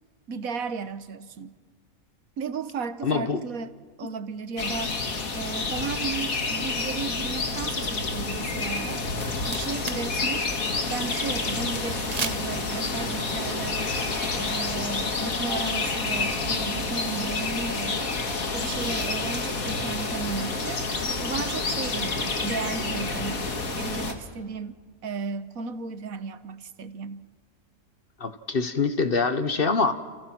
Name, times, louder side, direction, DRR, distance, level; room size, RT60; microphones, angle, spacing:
voice 1, 0.3-1.5 2.4-5.0 5.3-9.1 9.5-10.6 10.9-13.8 14.3-18.1 18.5-20.8 21.2-24.8 25.0-27.3, right 5 dB, 80° right, 12 dB, 1.5 m, -34 dB
voice 2, 3.0-3.4 28.2-29.9, left 4 dB, 45° left, 9 dB, 1.3 m, -24 dB
sound 1, 4.6-24.1, left 3 dB, 80° left, 2.4 m, -29 dB
sound 2, 9.1-10.2 10.4-10.5 12.1-12.7, right 4 dB, 35° right, 0.9 m, -33 dB
29.5 x 29.0 x 6.1 m, 1.5 s
omnidirectional pair, 1.4 m